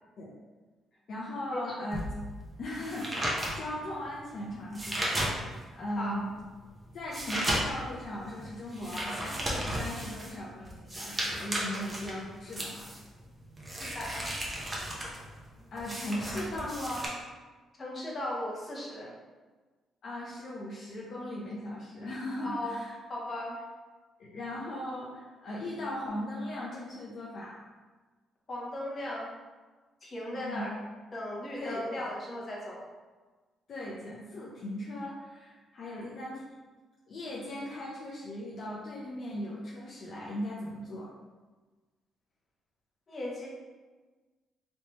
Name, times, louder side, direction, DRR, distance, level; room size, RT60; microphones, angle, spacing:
voice 1, 1.1-2.0 2.6-6.3 6.9-12.9 15.7-17.1 20.0-23.0 24.2-27.6 30.3-30.6 31.6-32.1 33.7-36.4 37.1-41.1, left 1 dB, 60° left, -6 dB, 0.6 m, -38 dB
sound 1, 1.9-5.8 6.2-17.1, right 1 dB, 20° right, 0.9 m, -35 dB
voice 2, 13.8-14.3 17.8-19.1 22.4-22.8 23.1-23.6 28.5-29.3 30.0-30.7 31.1-32.8 35.8-36.1 43.1-43.5, left 1 dB, 35° left, -4 dB, 1.1 m, -37 dB
3.3 x 3.0 x 3.0 m, 1.3 s
cardioid pair, 90°, 0 cm